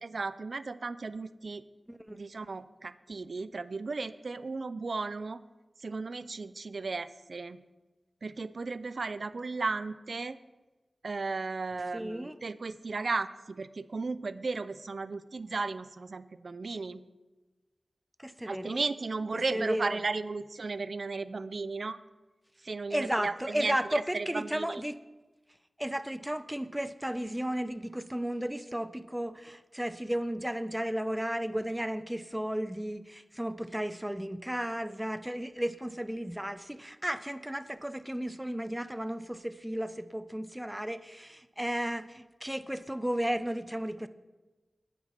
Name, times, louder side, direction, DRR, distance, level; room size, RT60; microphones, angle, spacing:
voice 1, 0.0-1.6 2.1-5.4 5.8-7.6 8.2-10.4 11.0-17.0 18.5-22.0 22.6-24.8, right 3 dB, 70° right, 15 dB, 0.5 m, -35 dB
voice 2, 1.9-2.2 11.9-12.4 18.2-18.8 19.3-20.0 22.9-25.0 25.8-44.1, equal, 10° right, 13 dB, 0.6 m, -34 dB
9.3 x 9.2 x 5.8 m, 1.2 s
cardioid pair, 50°, 0 cm